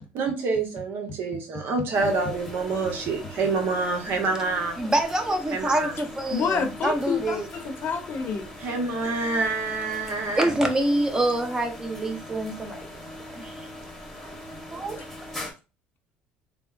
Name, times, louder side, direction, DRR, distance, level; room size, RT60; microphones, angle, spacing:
voice 1, 0.1-4.8 5.5-5.9 8.6-10.5, right 3 dB, 65° right, 0.9 m, -27 dB
sound 1, 1.9-15.5, left 1 dB, ahead, 1.1 m, -41 dB
voice 2, 4.8-7.5 10.4-12.8 13.3-13.5 14.7-15.1, right 1 dB, 15° right, 0.7 m, -26 dB
voice 3, 6.3-8.5, left 6 dB, 55° left, 0.7 m, -28 dB
3.4 x 2.1 x 2.4 m
supercardioid pair, 100°, 4 cm